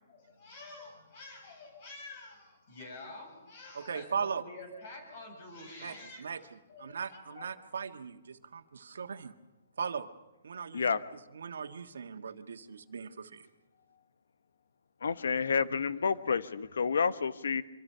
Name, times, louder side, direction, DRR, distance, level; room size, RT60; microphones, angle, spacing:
voice 1, 0.1-7.5, left 2 dB, 40° left, 4 dB, 7.2 m, -48 dB
voice 2, 3.7-4.4 5.8-6.4 6.8-9.3 9.8-10.1 10.4-10.8 11.1-13.5, right 6 dB, 85° right, 7 dB, 1.5 m, -38 dB
voice 3, 15.0-17.6, left 5 dB, 85° left, 14 dB, 1.2 m, -29 dB
25.0 x 24.5 x 5.6 m, 1.1 s
hypercardioid pair, 165°, 0 cm